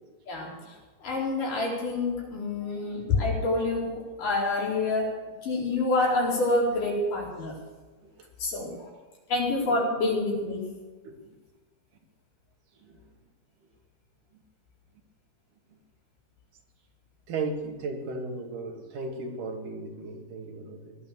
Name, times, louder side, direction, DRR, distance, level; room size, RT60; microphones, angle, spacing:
voice 1, 1.0-5.1 5.4-7.5 8.4-8.9 9.3-10.6, left 2 dB, 90° left, -3 dB, 6.1 m, -27 dB
voice 2, 17.3-21.0, right 3 dB, 80° right, 2 dB, 3.8 m, -35 dB
18.0 x 11.5 x 6.8 m, 1.3 s
omnidirectional pair, 3.6 m